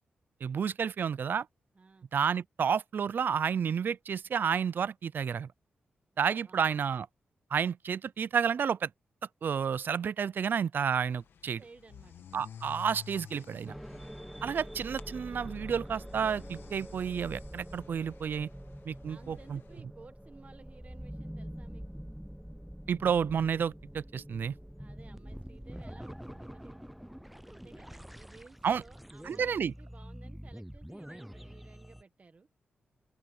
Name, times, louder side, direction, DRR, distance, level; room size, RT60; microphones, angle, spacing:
voice 1, 0.4-1.5 2.1-5.5 6.2-7.1 7.5-8.9 9.4-11.6 12.3-13.7 14.4-18.5 18.9-19.6 22.9-24.5 28.6-28.8 29.3-29.7, right 7 dB, 65° right, 0.4 m, -30 dB
voice 2, 1.7-2.1 6.1-6.6 11.6-12.5 19.1-22.0 24.8-26.8 27.5-32.5, right 4 dB, 40° right, 1.5 m, -57 dB
sound 1, 11.0-19.8, left 8 dB, 80° left, 1.5 m, -53 dB
sound 2, 13.6-32.0, equal, 5° right, 0.4 m, -45 dB
open air
cardioid pair, 75°, 4 cm